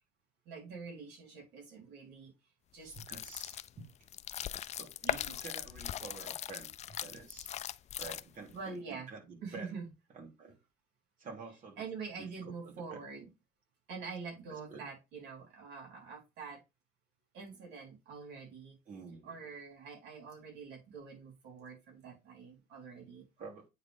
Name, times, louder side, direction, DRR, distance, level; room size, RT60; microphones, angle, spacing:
voice 1, 0.5-2.3 2.7-2.9 8.5-9.1 9.4-9.8 11.8-13.3 13.9-16.6 17.3-18.8 19.2-23.2, right 5 dB, 85° right, 4.0 m, -45 dB
voice 2, 2.8-3.9 4.7-6.7 7.0-7.5 8.0-9.8 10.1-10.6 11.2-11.8 12.2-13.0 14.5-14.8 18.9-19.3 22.9-23.0 23.4-23.7, right 4 dB, 50° right, 3.2 m, -49 dB
sound 1, 2.9-8.6, left 10 dB, 40° left, 0.4 m, -40 dB
8.8 x 4.1 x 3.6 m
cardioid pair, 110°, 17 cm